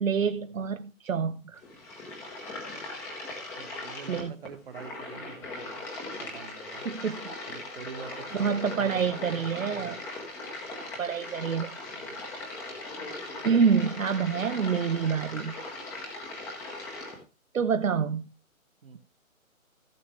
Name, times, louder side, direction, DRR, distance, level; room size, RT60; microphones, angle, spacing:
voice 1, 0.0-1.6 4.1-4.3 6.8-7.3 8.3-10.0 10.7-11.8 13.4-15.5 17.5-18.2, right 6 dB, 70° right, 9 dB, 0.8 m, -27 dB
sound 1, 1.6-17.2, left 2 dB, 5° left, 0.9 m, -39 dB
voice 2, 3.6-5.8 6.2-6.8 7.5-9.7 11.9-12.3 18.8-19.0, right 6 dB, 45° right, 9 dB, 1.4 m, -45 dB
15.0 x 7.1 x 3.2 m, 0.31 s
figure-of-eight pair, 150°, 41 cm